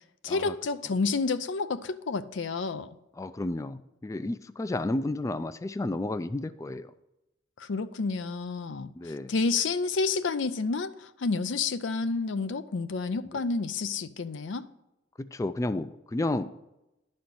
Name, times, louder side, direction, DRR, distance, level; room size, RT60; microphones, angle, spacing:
voice 1, 0.2-2.9 7.6-8.9 9.3-14.7, left 4 dB, 85° left, 12 dB, 0.5 m, -29 dB
voice 2, 3.2-6.9 8.9-9.3 13.2-13.4 15.2-16.5, left 2 dB, 15° left, 12 dB, 0.3 m, -32 dB
11.5 x 4.3 x 7.9 m, 0.93 s
head